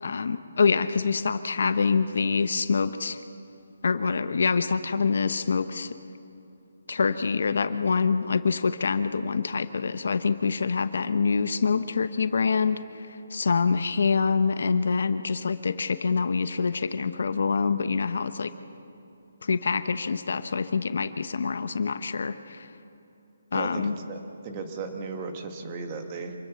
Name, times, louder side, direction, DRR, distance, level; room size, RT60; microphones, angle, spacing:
voice 1, 0.0-3.2 3.8-5.9 6.9-18.5 19.4-22.7 23.5-23.9, left 5 dB, 60° left, 11 dB, 1.0 m, -25 dB
voice 2, 23.5-26.3, right 4 dB, 20° right, 5 dB, 1.5 m, -36 dB
26.5 x 20.0 x 7.1 m, 2.9 s
hypercardioid pair, 170°, 0 cm